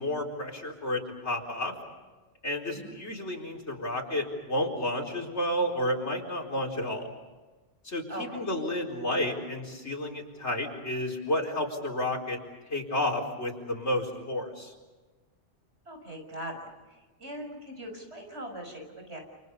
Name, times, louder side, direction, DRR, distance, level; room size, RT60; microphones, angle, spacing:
voice 1, 0.0-1.7 2.4-7.1 7.8-12.4 12.7-14.7, left 1 dB, 75° left, 1 dB, 4.8 m, -31 dB
voice 2, 8.1-8.4 15.8-19.2, equal, 70° right, 3 dB, 6.7 m, -41 dB
29.5 x 29.0 x 5.5 m, 1.2 s
omnidirectional pair, 1.2 m